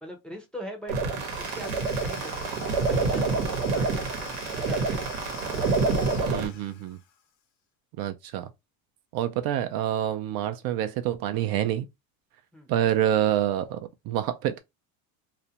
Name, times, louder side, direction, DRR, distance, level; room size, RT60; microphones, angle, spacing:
voice 1, 0.0-0.9 1.4-3.5 3.7-6.5 12.5-12.7, equal, ahead, 0.5 m, -42 dB
sound 1, 0.9-6.5, right 4 dB, 85° right, 1.0 m, -27 dB
Domestic sounds home sounds / Tools, 1.0-7.1, left 9 dB, 70° left, 0.7 m, -44 dB
voice 2, 6.3-7.0 8.0-8.5 9.1-11.9 12.7-14.6, right 11 dB, 60° right, 0.5 m, -27 dB
2.5 x 2.1 x 2.7 m
cardioid pair, 125°, 40 cm